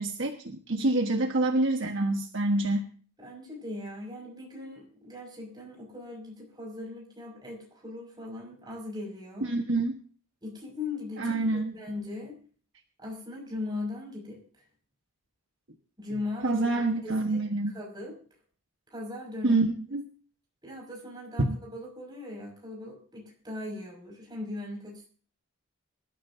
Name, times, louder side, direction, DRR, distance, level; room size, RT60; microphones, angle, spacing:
voice 1, 0.0-2.9 9.4-10.0 11.2-11.7 16.4-17.8 19.4-20.1 21.5-21.6, right 2 dB, 55° right, 4 dB, 1.4 m, -27 dB
voice 2, 0.8-1.1 3.2-9.5 10.4-12.4 13.0-14.6 16.0-18.4 18.9-19.6 20.6-25.1, left 2 dB, 20° right, -1 dB, 5.8 m, -39 dB
25.0 x 13.0 x 2.8 m, 0.41 s
head